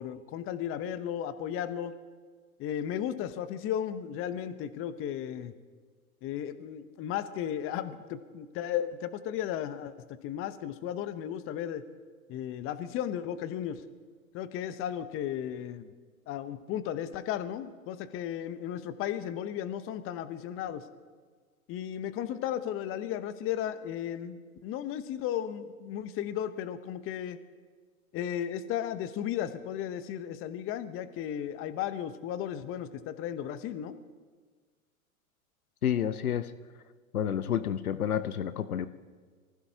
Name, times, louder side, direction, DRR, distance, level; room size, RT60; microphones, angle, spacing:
voice 1, 0.0-1.9 2.6-5.5 6.2-11.8 12.3-13.8 14.3-15.9 16.3-20.8 21.7-27.4 28.1-34.0, left 10 dB, 30° left, 12 dB, 0.9 m, -35 dB
voice 2, 35.8-36.5 37.1-38.9, left 9 dB, 80° left, 13 dB, 0.8 m, -29 dB
24.5 x 15.5 x 2.9 m, 1.5 s
hypercardioid pair, 100°, 43 cm